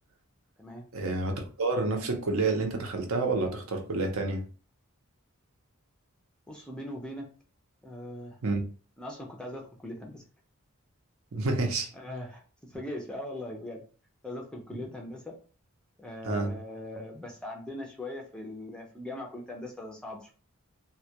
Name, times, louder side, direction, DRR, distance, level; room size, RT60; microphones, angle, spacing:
voice 1, 0.9-4.4 8.4-8.6 11.3-11.9 16.2-16.5, right 3 dB, 70° right, 0.6 m, -29 dB
voice 2, 6.5-7.3 7.8-8.4 9.0-10.2 11.9-12.4 12.7-13.8 14.2-15.3 16.0-20.3, left 1 dB, 5° left, 0.3 m, -40 dB
2.2 x 2.1 x 2.7 m
head